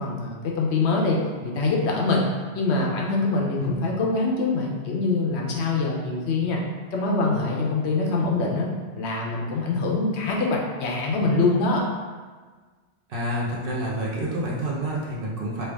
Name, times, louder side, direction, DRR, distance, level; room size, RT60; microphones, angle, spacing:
voice 1, 0.0-2.3 2.5-6.6 6.9-8.7 8.9-11.8, left 3 dB, 70° left, -1 dB, 0.8 m, -24 dB
voice 2, 13.1-15.6, right 1 dB, 55° right, -5 dB, 0.8 m, -28 dB
3.3 x 2.5 x 3.4 m, 1.4 s
omnidirectional pair, 1.2 m